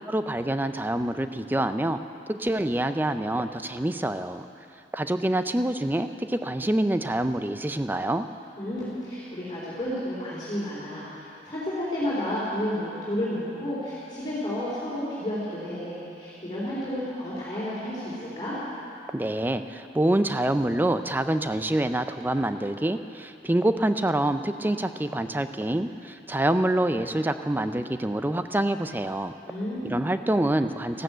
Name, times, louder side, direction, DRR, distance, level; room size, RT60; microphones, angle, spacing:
voice 1, 0.1-2.0 2.3-4.4 4.9-8.3 19.1-29.3 29.8-31.0, right 1 dB, 10° right, 10 dB, 0.4 m, -26 dB
voice 2, 8.6-18.6 29.5-30.0, left 1 dB, 25° left, -9 dB, 3.5 m, -31 dB
14.5 x 12.5 x 7.9 m, 2.7 s
head